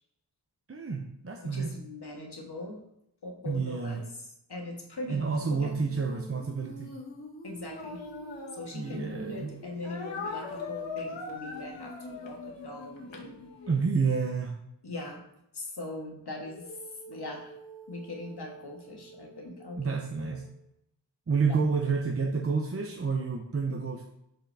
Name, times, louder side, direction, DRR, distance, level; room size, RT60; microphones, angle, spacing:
voice 1, 0.7-1.7 3.5-4.0 5.1-6.9 8.7-9.5 13.7-14.6 19.8-20.4 21.3-24.0, right 5 dB, 30° right, 1 dB, 0.6 m, -29 dB
voice 2, 1.4-2.8 3.2-4.2 4.5-5.7 7.4-8.0 8.5-13.5 14.8-15.2 15.5-16.8 17.1-17.5 17.9-20.3 21.5-21.6, left 2 dB, 60° left, 0 dB, 1.5 m, -41 dB
Female singing, 5.3-14.2 16.4-20.6, right 1 dB, 30° left, 1.3 m, -48 dB
Speech, 7.6-9.2 9.8-13.9, left 4 dB, 85° left, 1.1 m, -41 dB
6.3 x 5.0 x 3.3 m, 0.79 s
wide cardioid pair, 85°, 44 cm